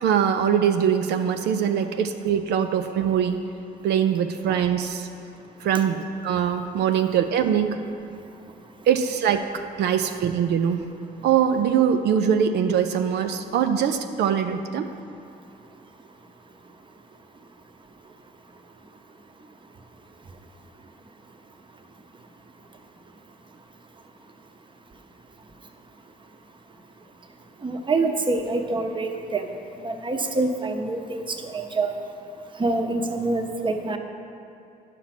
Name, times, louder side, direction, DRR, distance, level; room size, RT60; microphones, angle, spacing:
voice 1, 0.0-3.4 3.8-5.1 5.6-7.8 8.9-9.5 9.8-10.9 11.2-14.9, right 8 dB, 80° right, 6 dB, 0.4 m, -22 dB
voice 2, 27.6-29.5 29.8-31.9 32.6-34.0, right 3 dB, 30° right, 5 dB, 0.8 m, -26 dB
10.0 x 5.8 x 5.9 m, 2.6 s
cardioid pair, 90°, 17 cm